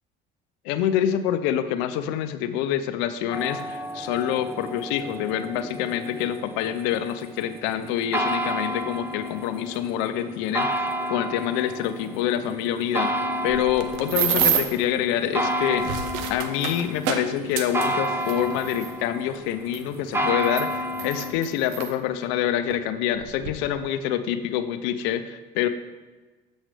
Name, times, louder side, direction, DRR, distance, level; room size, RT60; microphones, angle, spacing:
voice 1, 0.6-13.1 13.4-16.0 16.3-25.7, left 10 dB, 80° left, 11 dB, 0.6 m, -26 dB
sound 1, 3.3-21.3, equal, 15° right, 0.8 m, -31 dB
sound 2, 13.5-14.8 15.6-18.9 19.7-19.8 20.4-21.9 22.7-22.8 23.2-23.5, right 8 dB, 80° right, 0.7 m, -28 dB
7.5 x 6.3 x 3.3 m, 1.2 s
supercardioid pair, 95°, 18 cm